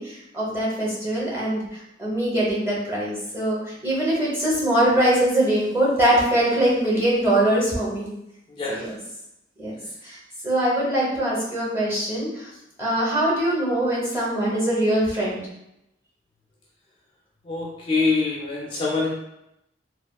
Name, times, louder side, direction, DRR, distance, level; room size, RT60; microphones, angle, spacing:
voice 1, 0.0-8.1 8.7-9.0 9.6-9.7 10.0-10.2 10.4-12.5 12.8-15.4, right 1 dB, 15° right, -6 dB, 0.8 m, -22 dB
voice 2, 17.5-19.1, left 3 dB, 30° left, -3 dB, 0.3 m, -24 dB
3.2 x 2.3 x 2.3 m, 0.85 s
head